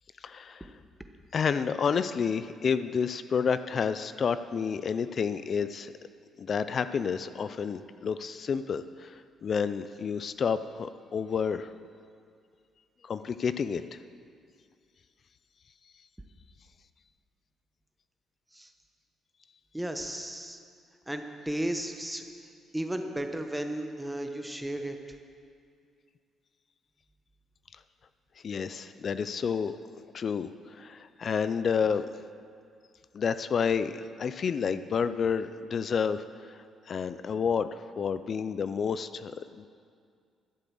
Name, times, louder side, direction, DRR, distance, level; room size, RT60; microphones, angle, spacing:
voice 1, 0.2-0.7 1.3-5.9 6.4-9.1 9.4-11.7 13.0-14.0 28.4-29.7 30.1-32.1 33.1-36.2 36.5-39.7, left 6 dB, 50° left, 13 dB, 0.4 m, -30 dB
voice 2, 19.7-20.6 21.1-22.2 22.7-25.0, right 1 dB, 5° right, 5 dB, 1.2 m, -34 dB
12.5 x 7.9 x 7.7 m, 2.3 s
cardioid pair, 90°, 0 cm